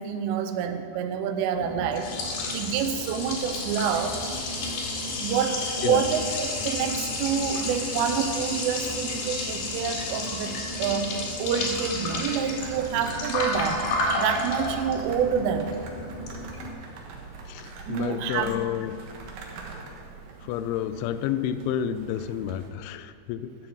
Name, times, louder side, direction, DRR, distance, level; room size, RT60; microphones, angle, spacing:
voice 1, 0.0-2.1 2.5-4.2 5.2-11.1 11.4-13.8 14.2-15.8 17.9-18.5, right 7 dB, 85° right, 7 dB, 3.3 m, -27 dB
Liquid, 1.6-16.7, left 2 dB, 60° left, 3.8 m, -31 dB
sound 1, 6.0-22.7, right 3 dB, 65° right, 2.3 m, -44 dB
voice 2, 17.5-19.0 20.4-23.6, left 10 dB, 85° left, 12 dB, 2.8 m, -30 dB
12.0 x 7.8 x 7.0 m, 2.2 s
omnidirectional pair, 5.7 m